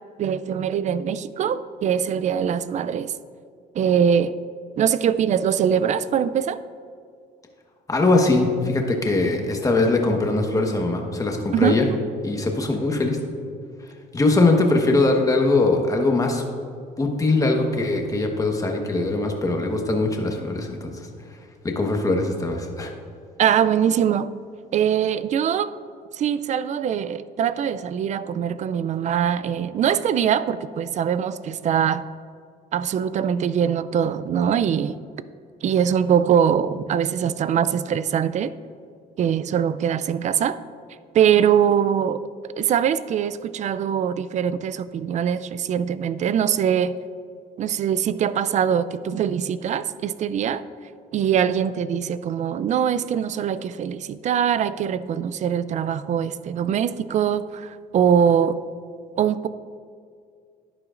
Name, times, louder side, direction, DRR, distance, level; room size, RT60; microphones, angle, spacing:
voice 1, 0.2-3.1 3.7-4.3 4.8-6.6 11.5-11.8 23.4-24.3 24.7-25.7 26.1-32.0 32.7-35.0 35.6-38.5 39.2-40.6 41.1-42.2 42.6-46.9 47.6-50.6 51.1-58.6 59.2-59.5, right 8 dB, 45° right, 15 dB, 0.4 m, -22 dB
voice 2, 7.9-11.9 12.2-13.2 14.1-16.4 17.0-20.9 21.6-22.9, left 2 dB, 20° left, 2 dB, 1.2 m, -21 dB
11.5 x 9.7 x 2.5 m, 2.2 s
cardioid pair, 110°, 17 cm